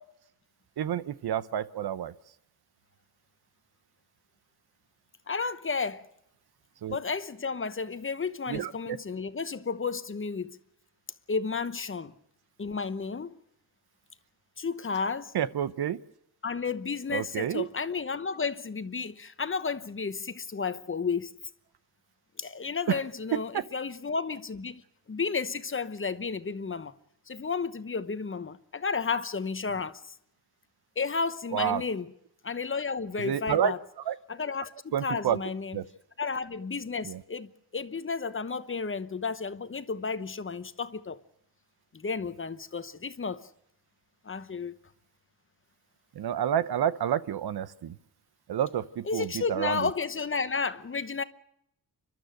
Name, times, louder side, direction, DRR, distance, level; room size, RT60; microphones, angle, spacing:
voice 1, 0.8-2.1 6.8-7.0 8.5-9.0 15.3-16.0 17.1-17.7 22.9-23.0 23.3-23.6 31.5-31.8 33.2-33.7 34.1-34.2 34.9-35.4 35.7-35.8 37.0-37.2 46.1-48.0 48.5-49.9, right 10 dB, 75° right, 0.9 m, -29 dB
voice 2, 5.3-6.1 6.9-10.6 11.3-12.1 12.6-13.3 14.6-15.3 16.4-21.4 22.4-24.8 25.1-26.9 27.3-30.1 31.0-32.1 32.4-33.8 34.3-35.8 36.2-41.2 41.9-43.5 44.2-44.7 49.0-51.2, left 5 dB, 30° left, 1.0 m, -32 dB
29.5 x 12.5 x 7.7 m
cardioid pair, 85°, 39 cm